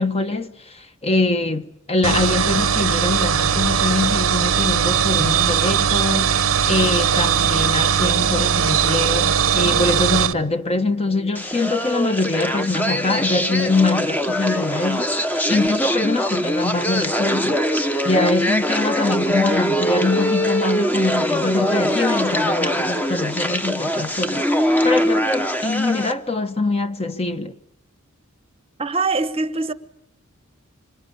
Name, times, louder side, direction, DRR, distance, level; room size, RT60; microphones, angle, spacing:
voice 1, 0.0-17.6 18.0-27.5, left 2 dB, 30° left, 1.2 m, -23 dB
sound 1, 2.0-10.3, right 7 dB, 85° right, 1.0 m, -19 dB
sound 2, 11.3-26.1, equal, 10° left, 1.0 m, -22 dB
voice 2, 28.8-29.7, right 3 dB, 30° right, 1.0 m, -23 dB
26.0 x 25.5 x 8.5 m
head